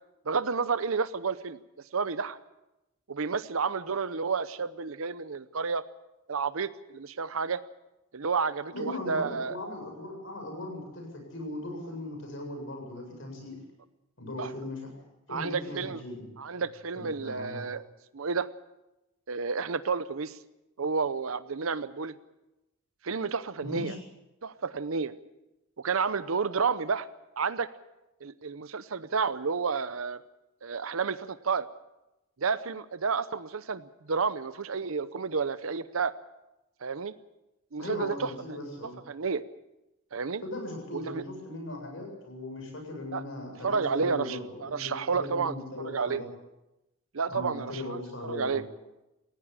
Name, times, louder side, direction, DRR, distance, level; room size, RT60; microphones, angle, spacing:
voice 1, 0.3-1.6 1.9-2.4 3.1-5.8 6.3-7.6 8.1-9.6 14.4-14.5 15.3-16.0 16.4-17.8 18.1-18.5 19.3-20.4 20.8-22.2 23.0-23.9 24.4-25.1 25.8-27.1 27.4-27.7 28.2-30.2 30.6-31.7 32.4-36.1 36.8-37.1 37.7-38.3 39.1-39.4 40.1-40.4 40.9-41.2 43.1-43.2 43.6-45.6 45.8-46.2 47.1-48.6, right 5 dB, 85° right, 14 dB, 0.8 m, -30 dB
voice 2, 8.7-13.6 14.2-14.9 15.3-16.3 16.9-17.6 23.6-24.0 37.8-39.0 40.4-46.3 47.3-48.6, left 1 dB, 65° left, 2 dB, 7.9 m, -38 dB
19.0 x 16.0 x 8.6 m, 0.97 s
head